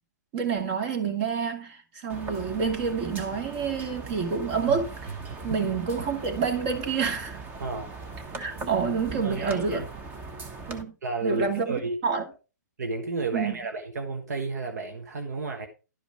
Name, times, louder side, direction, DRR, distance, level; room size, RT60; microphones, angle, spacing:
voice 1, 0.3-5.1 5.4-7.4 8.4-9.8 10.7-10.9 11.2-12.2 13.3-13.6, right 5 dB, 35° right, 2.1 m, -28 dB
sound 1, 2.1-10.8, right 3 dB, 20° right, 1.2 m, -40 dB
voice 2, 7.6-7.9 9.2-9.9 11.0-12.0 12.8-15.7, right 3 dB, 60° right, 1.4 m, -32 dB
11.5 x 5.1 x 4.9 m
figure-of-eight pair, 125°, 10 cm